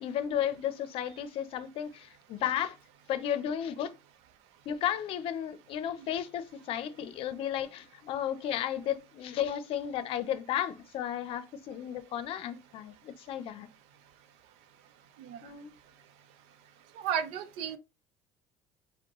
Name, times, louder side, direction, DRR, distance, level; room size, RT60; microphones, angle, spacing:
voice 1, 0.0-2.8 3.1-3.9 4.7-13.7 15.4-15.7, left 10 dB, 60° left, 0.6 m, -33 dB
voice 2, 17.0-17.8, right 8 dB, 75° right, 0.6 m, -33 dB
5.0 x 2.2 x 3.0 m
supercardioid pair, 95°, 11 cm